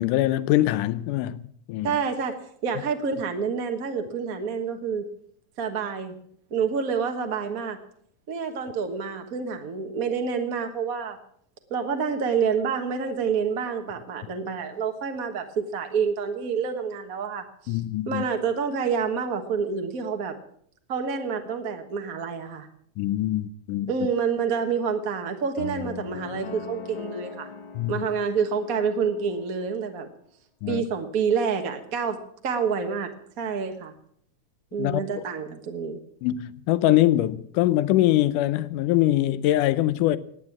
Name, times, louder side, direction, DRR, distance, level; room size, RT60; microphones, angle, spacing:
voice 1, 0.0-1.4 1.7-2.0 17.7-18.3 23.0-23.9 27.7-28.1 30.6-30.9 34.8-35.2 36.2-40.2, left 14 dB, 85° left, 2.3 m, -23 dB
voice 2, 1.8-5.1 5.6-6.2 6.5-7.8 8.3-11.2 11.7-17.8 18.1-20.4 20.9-22.7 23.9-27.5 27.9-30.1 30.7-33.9 34.7-36.0, right 6 dB, 50° right, 1.0 m, -28 dB
sound 1, 25.6-29.7, left 4 dB, 55° left, 2.7 m, -39 dB
17.0 x 9.7 x 7.2 m
omnidirectional pair, 3.6 m